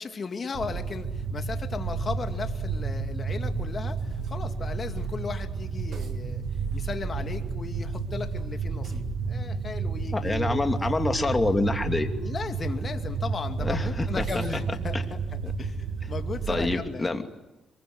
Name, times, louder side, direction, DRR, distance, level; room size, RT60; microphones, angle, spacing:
voice 1, 0.0-6.4 6.7-10.6 12.2-17.2, left 5 dB, 40° left, 6 dB, 2.5 m, -36 dB
sound 1, 0.5-16.8, right 4 dB, 65° right, 2.1 m, -31 dB
voice 2, 10.1-12.1 13.6-14.2 14.9-15.0 15.4-15.5 16.5-17.2, left 2 dB, 20° left, 6 dB, 2.7 m, -26 dB
26.5 x 23.0 x 9.7 m, 1.0 s
cardioid pair, 90°, 0 cm